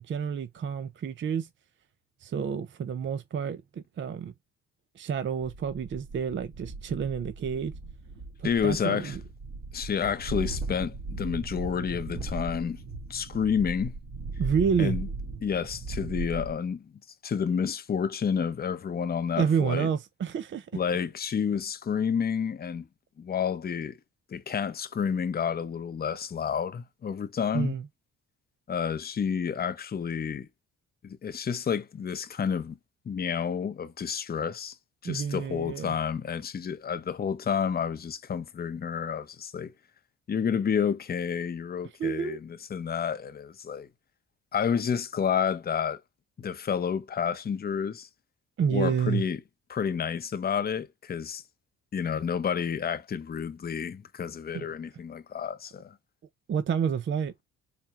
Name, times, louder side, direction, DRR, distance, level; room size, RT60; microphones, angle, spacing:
voice 1, 0.0-1.5 2.2-4.3 4.9-7.7 8.4-9.2 14.4-15.0 19.4-20.7 27.5-27.9 35.0-35.9 42.0-42.4 48.6-49.2 54.5-54.7 56.5-57.3, right 7 dB, 40° right, 0.5 m, -29 dB
sound 1, 5.5-16.5, right 3 dB, 55° right, 2.1 m, -38 dB
voice 2, 8.4-9.2 9.7-12.8 13.1-13.9 14.8-15.1 15.4-16.8 17.2-19.9 20.7-22.9 23.2-24.0 24.3-27.8 28.7-30.5 31.0-32.8 33.1-34.7 35.0-39.7 40.3-43.9 44.5-46.0 46.4-48.1 48.7-49.4 49.7-51.4 51.9-55.9, left 7 dB, 30° left, 0.7 m, -30 dB
4.2 x 2.1 x 3.5 m
cardioid pair, 90°, 30 cm